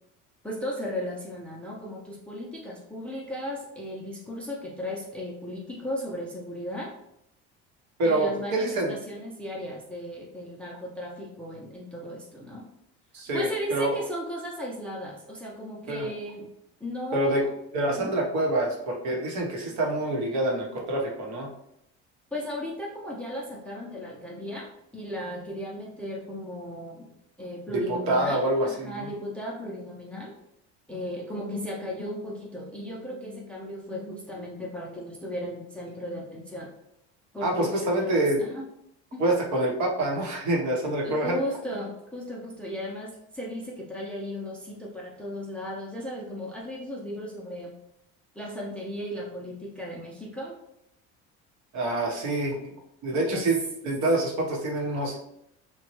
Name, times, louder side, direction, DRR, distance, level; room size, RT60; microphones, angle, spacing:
voice 1, 0.4-6.9 8.0-12.6 13.3-16.5 16.8-17.5 18.0-18.1 22.3-27.1 27.4-30.3 30.9-36.7 37.3-38.6 39.1-39.3 41.0-47.7 48.4-50.6 53.3-53.5, equal, 5° left, -3 dB, 0.4 m, -36 dB
voice 2, 8.0-9.0 13.1-13.9 15.9-16.1 17.1-17.4 17.7-21.5 27.9-29.1 37.4-38.4 39.2-41.4 51.7-52.6 53.0-55.2, right 2 dB, 60° right, 0 dB, 0.9 m, -26 dB
2.9 x 2.2 x 2.9 m, 0.77 s
cardioid pair, 120°, 32 cm